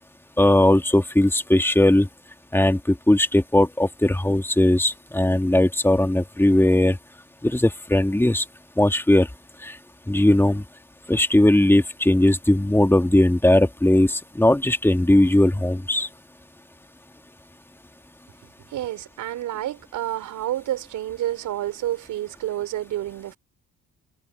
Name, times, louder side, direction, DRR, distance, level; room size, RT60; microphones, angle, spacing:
voice 1, 0.4-2.1 2.5-7.0 7.4-8.4 8.8-9.3 9.6-9.7 10.1-10.6 11.1-16.1, left 1 dB, 5° left, 2.1 m, -18 dB
voice 2, 18.7-23.4, right 13 dB, 85° right, 5.3 m, -29 dB
cardioid pair, 90°, 30 cm